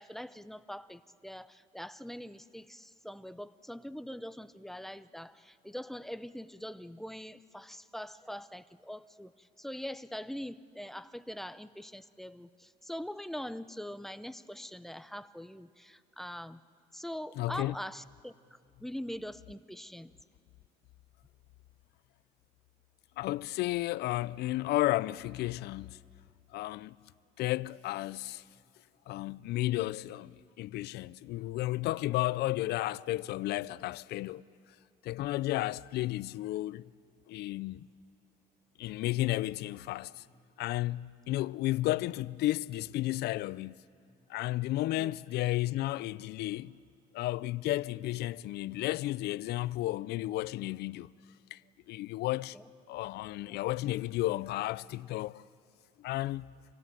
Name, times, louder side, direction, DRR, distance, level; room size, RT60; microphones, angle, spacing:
voice 1, 0.0-16.6 16.9-20.1 45.0-45.1 52.5-52.6 53.5-53.6, equal, ahead, 0.6 m, -43 dB
voice 2, 17.4-17.7 23.2-26.0 26.5-27.0 27.4-28.4 29.1-34.4 35.0-36.8 37.3-37.9 38.8-40.2 40.6-43.7 44.3-46.8 47.1-51.1 51.5-51.6 51.9-52.6 52.9-55.4 56.0-56.5, left 16 dB, 75° left, 0.5 m, -33 dB
26.0 x 16.5 x 9.0 m
cardioid pair, 110°, 17 cm